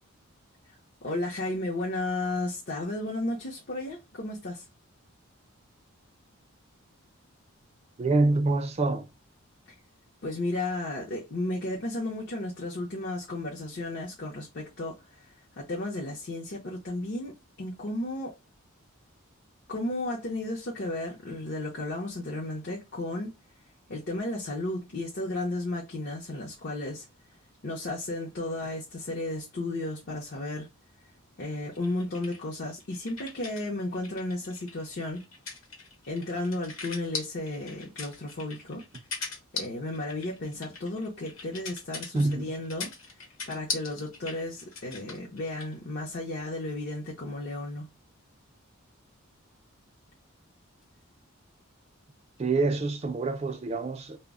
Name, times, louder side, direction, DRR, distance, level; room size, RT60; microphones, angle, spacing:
voice 1, 0.7-4.6 10.2-18.4 19.7-23.3 23.9-27.1 27.6-30.7 31.4-35.2 36.1-38.8 39.2-47.9, left 2 dB, 50° left, 0.6 m, -34 dB
voice 2, 8.0-9.1 42.1-42.5 52.4-54.2, right 3 dB, 30° right, 0.3 m, -26 dB
sound 1, 31.7-33.6 33.9-45.7, left 4 dB, 70° left, 0.9 m, -40 dB
2.1 x 2.0 x 3.5 m
head